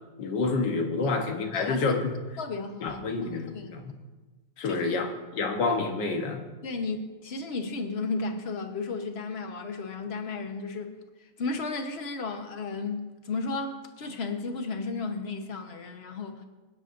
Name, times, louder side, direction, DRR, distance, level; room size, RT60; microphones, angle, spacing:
voice 1, 0.2-2.2 2.8-3.9 4.6-5.1 5.3-6.4, left 3 dB, 85° left, 3 dB, 1.8 m, -28 dB
voice 2, 1.5-1.9 2.4-3.7 4.6-5.0 6.6-16.4, left 3 dB, 45° left, 5 dB, 1.2 m, -34 dB
24.5 x 9.7 x 2.6 m, 1.2 s
omnidirectional pair, 1.8 m